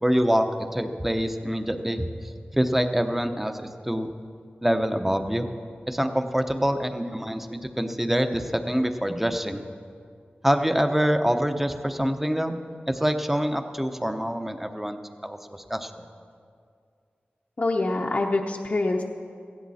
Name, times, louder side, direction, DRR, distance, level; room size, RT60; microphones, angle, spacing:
voice 1, 0.0-2.1 2.5-4.1 4.6-5.5 5.9-9.6 10.4-12.6 12.9-16.0, equal, 5° right, 7 dB, 0.8 m, -25 dB
voice 2, 17.6-19.0, left 2 dB, 45° left, 0 dB, 0.8 m, -25 dB
17.0 x 15.5 x 4.2 m, 2.3 s
wide cardioid pair, 95°, 4 cm